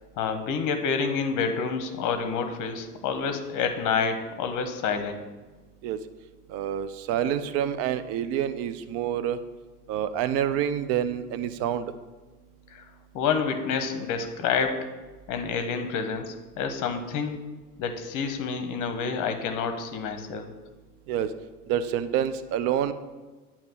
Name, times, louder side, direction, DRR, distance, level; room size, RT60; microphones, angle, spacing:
voice 1, 0.2-5.2 12.7-12.8 13.1-14.9 15.3-17.4 17.8-20.5, left 5 dB, 40° left, 8 dB, 0.9 m, -28 dB
voice 2, 6.5-9.4 9.9-11.8 21.1-21.3 21.7-22.9, right 10 dB, 35° right, 12 dB, 0.4 m, -27 dB
8.7 x 2.9 x 6.2 m, 1.3 s
hypercardioid pair, 80°, 47 cm